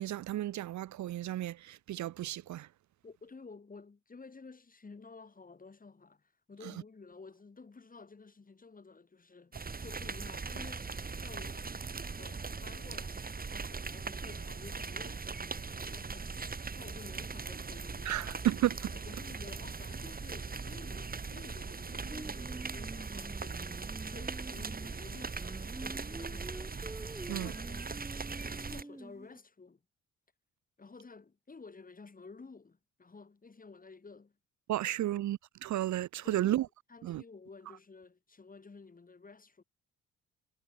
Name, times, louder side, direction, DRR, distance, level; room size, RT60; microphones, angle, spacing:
voice 1, 0.0-2.7 18.1-18.8 27.3-27.5 34.7-36.6 37.0-37.2, right 13 dB, 70° right, 1.0 m, -33 dB
voice 2, 3.0-11.7 12.2-13.2 13.5-18.4 18.9-25.5 25.8-26.7 27.3-29.8 30.8-34.4 35.2-35.3 36.2-39.6, left 4 dB, 30° left, 6.8 m, -53 dB
sound 1, 9.5-28.8, right 4 dB, 30° right, 4.4 m, -40 dB
Singing, 22.1-29.4, right 1 dB, 10° right, 1.8 m, -47 dB
cardioid pair, 90°, 30 cm